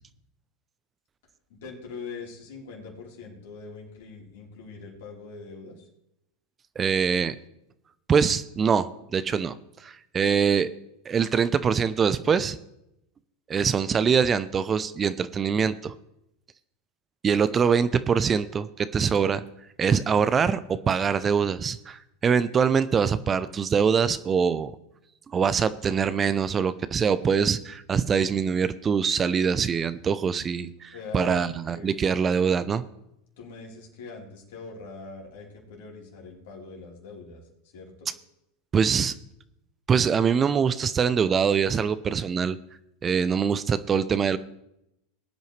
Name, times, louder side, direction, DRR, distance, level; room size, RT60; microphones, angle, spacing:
voice 1, 1.5-5.9 30.9-32.1 33.4-37.4 37.7-38.1, left 4 dB, 70° left, -2 dB, 4.0 m, -42 dB
voice 2, 6.8-7.3 8.1-10.7 11.1-12.6 13.5-15.9 17.2-19.4 19.8-20.6 20.9-24.7 25.3-32.8 38.7-39.1 39.9-42.6 43.0-44.4, right 6 dB, 25° right, 14 dB, 0.6 m, -24 dB
20.0 x 9.1 x 3.3 m, 0.82 s
hypercardioid pair, 90°, 0 cm